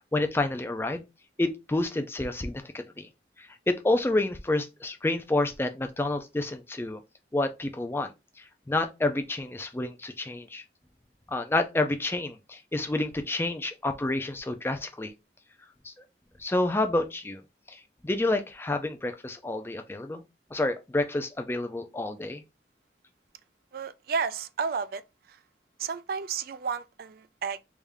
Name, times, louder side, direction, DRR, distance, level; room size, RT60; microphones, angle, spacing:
voice 1, 0.1-1.0 1.4-3.1 3.4-7.0 7.3-8.1 8.7-10.6 11.3-15.1 15.8-15.9 16.4-17.4 17.7-20.2 20.5-22.4, left 2 dB, 15° left, 0.4 m, -29 dB
voice 2, 23.7-25.0 25.3-25.4 25.8-27.6, right 5 dB, 55° right, 0.3 m, -32 dB
3.6 x 2.6 x 3.3 m
head